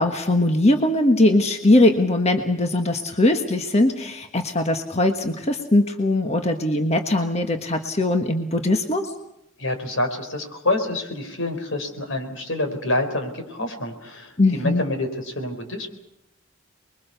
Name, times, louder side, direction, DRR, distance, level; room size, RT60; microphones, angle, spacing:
voice 1, 0.0-9.1 14.4-14.8, left 1 dB, 30° left, 5 dB, 1.4 m, -20 dB
voice 2, 9.6-15.9, left 2 dB, 75° left, 6 dB, 4.5 m, -27 dB
29.0 x 22.0 x 6.9 m, 0.82 s
head